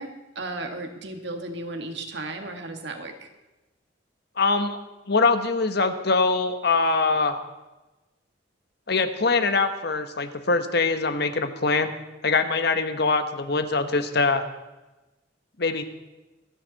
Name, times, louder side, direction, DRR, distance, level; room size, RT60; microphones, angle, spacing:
voice 1, 0.0-3.3, right 2 dB, 65° right, 4 dB, 1.9 m, -35 dB
voice 2, 4.4-4.8 5.1-7.4 8.9-11.9 12.2-14.4 15.6-15.8, left 3 dB, 60° left, 9 dB, 1.2 m, -23 dB
25.5 x 10.0 x 4.2 m, 1.1 s
head